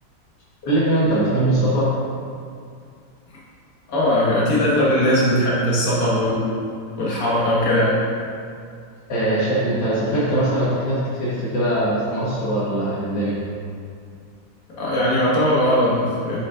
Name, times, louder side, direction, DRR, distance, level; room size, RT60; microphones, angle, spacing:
voice 1, 0.6-1.9 9.1-13.3, right 1 dB, 65° left, -8 dB, 2.0 m, -21 dB
voice 2, 3.9-6.5 7.0-8.0 14.8-16.4, left 1 dB, 50° left, -7 dB, 2.0 m, -19 dB
8.1 x 5.1 x 3.8 m, 2.3 s
omnidirectional pair, 1.9 m